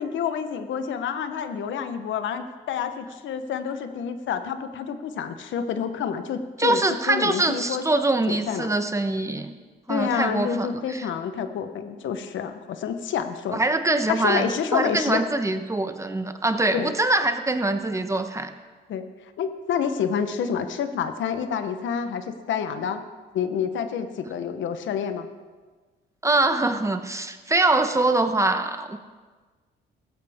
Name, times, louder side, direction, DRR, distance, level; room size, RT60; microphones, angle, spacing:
voice 1, 0.0-6.8 7.1-7.8 8.3-8.7 9.9-13.6 14.1-15.2 16.7-16.9 18.9-19.1 19.4-23.0 23.3-25.3, left 7 dB, 75° left, 9 dB, 1.0 m, -28 dB
voice 2, 6.6-9.5 9.9-11.1 13.5-18.5 26.2-29.0, right 2 dB, 15° right, 8 dB, 1.0 m, -24 dB
16.0 x 14.0 x 3.6 m, 1.4 s
cardioid pair, 90°, 20 cm